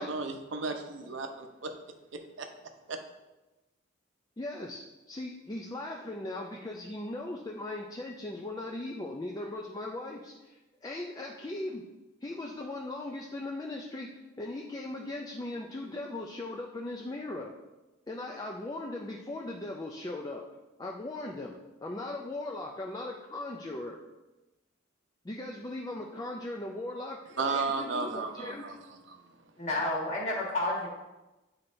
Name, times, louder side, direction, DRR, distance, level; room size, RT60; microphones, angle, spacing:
voice 1, 0.0-1.7 2.1-2.5 2.9-3.0 27.4-28.7 29.1-29.2 29.7-29.8, right 4 dB, 65° right, 5 dB, 0.7 m, -34 dB
voice 2, 4.4-11.9 12.2-14.1 14.4-17.5 18.1-20.4 20.8-24.0 25.2-28.8, left 2 dB, 20° left, 0 dB, 0.4 m, -38 dB
voice 3, 29.6-30.9, left 2 dB, 35° left, -4 dB, 1.6 m, -30 dB
9.5 x 4.3 x 2.6 m, 1.1 s
head